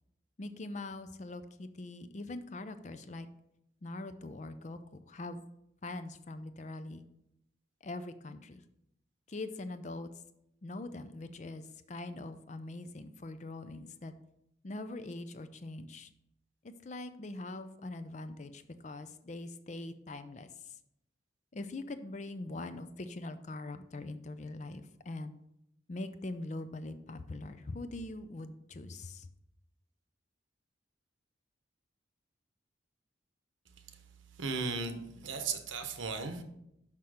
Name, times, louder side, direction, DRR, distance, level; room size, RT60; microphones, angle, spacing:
voice 1, 0.4-3.3 3.8-5.4 5.8-7.0 7.8-8.6 9.3-10.1 10.6-14.1 14.6-16.1 16.6-20.8 21.5-25.4 25.9-29.3, left 2 dB, 40° left, 11 dB, 0.5 m, -42 dB
voice 2, 34.4-36.4, right 4 dB, 90° right, 7 dB, 0.9 m, -36 dB
6.0 x 5.7 x 4.9 m, 0.80 s
head